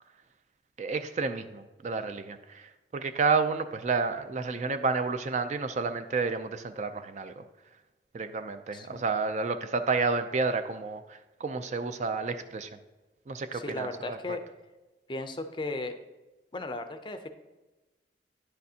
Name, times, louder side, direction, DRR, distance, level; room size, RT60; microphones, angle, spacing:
voice 1, 0.8-7.4 8.1-12.7 13.3-14.2, right 4 dB, 40° right, 9 dB, 0.4 m, -30 dB
voice 2, 8.7-9.0 13.5-14.4 15.1-16.0 16.5-17.3, left 2 dB, 25° left, 8 dB, 0.5 m, -36 dB
10.0 x 6.6 x 2.8 m, 1.1 s
head